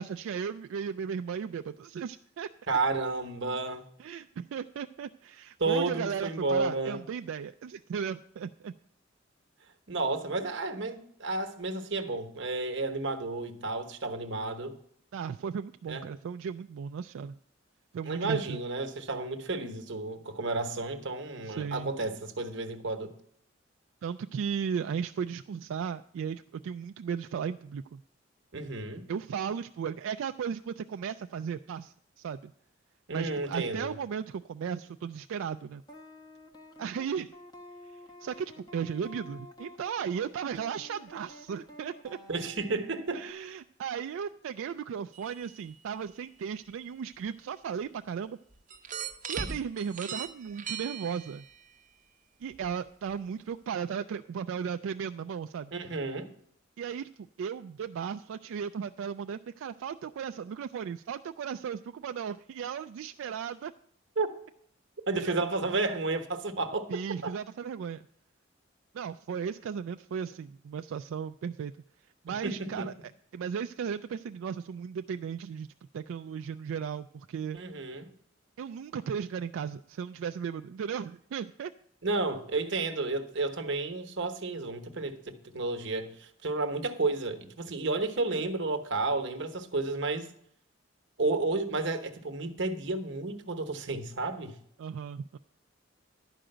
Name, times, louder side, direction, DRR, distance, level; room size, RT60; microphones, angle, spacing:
voice 1, 0.0-2.5 4.0-8.7 15.1-17.3 17.9-18.6 21.4-21.9 24.0-28.0 29.1-32.5 33.1-35.8 36.8-37.3 37.9-42.2 43.1-48.4 49.3-51.4 52.4-55.7 56.8-57.1 57.4-63.7 65.2-65.4 66.9-68.0 68.9-71.7 72.2-72.9 73.3-75.7 75.9-77.6 78.6-81.7 94.8-95.4, right 7 dB, 90° right, 0.3 m, -36 dB
voice 2, 2.7-3.8 5.6-7.0 9.9-14.7 15.9-16.0 18.0-23.1 28.5-29.1 33.1-34.0 42.3-43.2 55.7-56.3 64.2-64.3 65.1-66.9 67.2-67.3 72.4-72.9 77.5-78.1 82.0-90.3 91.2-94.6, right 3 dB, 65° right, 1.1 m, -31 dB
sound 1, 35.9-43.3, left 1 dB, 20° left, 0.9 m, -51 dB
sound 2, 45.1-45.7 47.2-47.3 48.7-51.6 52.5-52.7 53.1-53.2, right 6 dB, 40° right, 0.8 m, -39 dB
11.5 x 5.0 x 7.8 m
head